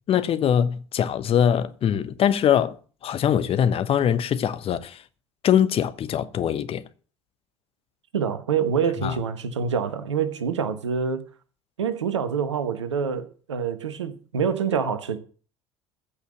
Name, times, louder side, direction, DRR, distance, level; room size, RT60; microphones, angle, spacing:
voice 1, 0.1-2.8 3.0-5.0 5.4-6.8 9.0-9.1, left 9 dB, 40° left, 1.0 m, -22 dB
voice 2, 8.1-11.3 11.8-15.2, right 6 dB, 80° right, 1.2 m, -26 dB
15.0 x 5.7 x 7.8 m
figure-of-eight pair, 65°, 15 cm